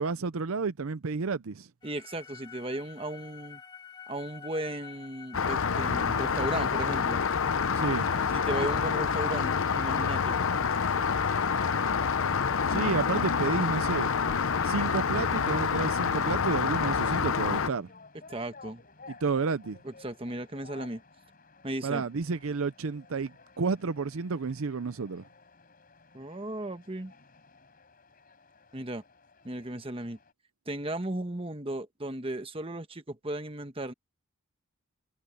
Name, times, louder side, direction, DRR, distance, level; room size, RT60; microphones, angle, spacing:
voice 1, 0.0-1.7 7.7-8.1 12.7-14.1 14.6-17.9 19.2-19.8 21.8-25.2, right 4 dB, 70° right, 0.6 m, -31 dB
sound 1, 1.8-14.9, left 7 dB, 20° left, 1.7 m, -47 dB
voice 2, 1.8-3.6 4.1-7.2 8.3-10.4 18.3-18.8 19.8-21.0 21.6-22.1 26.1-27.1 28.7-29.0 29.4-30.2 30.7-33.9, right 1 dB, 25° right, 1.2 m, -35 dB
Rain, 5.3-17.7, left 6 dB, 65° left, 0.7 m, -27 dB
sound 2, 12.2-30.3, left 3 dB, 40° left, 4.4 m, -54 dB
head